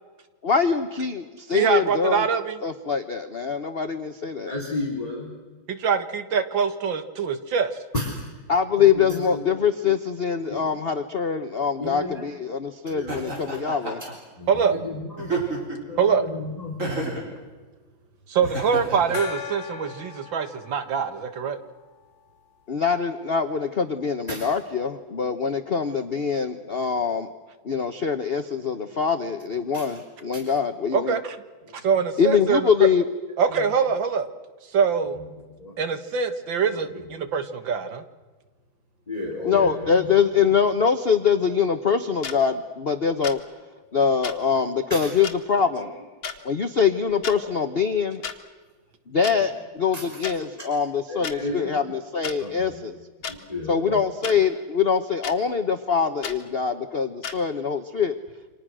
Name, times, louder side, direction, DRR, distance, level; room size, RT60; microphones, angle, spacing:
voice 1, 0.4-2.3 2.6-4.5 8.5-14.0 22.7-27.3 27.6-31.2 32.2-33.0 39.4-43.4 43.9-45.9 46.4-48.2 49.1-53.0 53.7-58.2, left 6 dB, 40° left, 8 dB, 1.0 m, -23 dB
voice 2, 1.5-2.6 5.7-7.7 14.5-14.8 16.0-16.3 18.3-21.6 30.9-31.4 31.8-32.7 33.4-34.3 34.7-35.2 35.8-38.0, right 6 dB, 70° right, 9 dB, 2.2 m, -24 dB
voice 3, 4.5-5.3 7.9-8.2 8.8-9.5 10.5-10.7 11.8-12.3 12.9-13.2 14.0-14.1 14.4-15.5 15.9-16.8 24.3-24.5 29.7-29.9 30.3-30.4 31.6-31.8 33.5-33.7 35.2-35.3 35.6-35.8 36.7-37.1 39.1-40.1 44.9-45.1 45.8-45.9 47.3-47.5 49.9-50.1 51.1-51.9 52.4-52.8 53.3-54.0, left 2 dB, 20° left, 0 dB, 3.6 m, -33 dB
Laughter, 13.1-14.1 15.2-15.9 16.8-17.3 18.4-19.2, right 2 dB, 40° right, 5.3 m, -30 dB
Gong, 19.1-22.4, left 7 dB, 55° left, 1.4 m, -39 dB
sound 1, 42.2-42.4 43.2-43.4 44.2-44.4 45.2-45.4 46.2-46.4 47.1-47.4 48.2-48.4 49.2-49.4 50.2-50.4 51.2-51.4 52.2-52.4 53.2-53.4 54.2-54.4 55.2-55.4 56.2-56.4 57.2-57.4, left 7 dB, 75° left, 2.6 m, -32 dB
28.5 x 26.0 x 6.3 m, 1.4 s
omnidirectional pair, 2.1 m